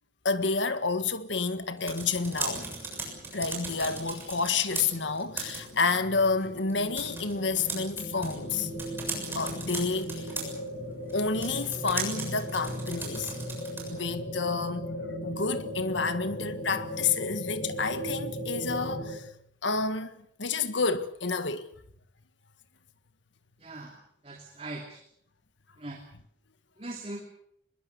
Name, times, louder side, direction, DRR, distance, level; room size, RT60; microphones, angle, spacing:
voice 1, 0.2-2.7 3.3-8.7 9.3-10.3 11.1-13.3 13.9-14.9 15.2-19.3 19.6-21.7, left 4 dB, 90° left, 1.7 m, -29 dB
sound 1, 1.6-14.1, right 3 dB, 10° right, 7.0 m, -39 dB
sound 2, 2.0-19.2, equal, 60° left, 6.3 m, -38 dB
voice 2, 23.6-24.0 24.2-25.0 25.8-26.0 26.8-27.2, right 2 dB, 35° right, 2.7 m, -40 dB
25.5 x 21.5 x 6.9 m
head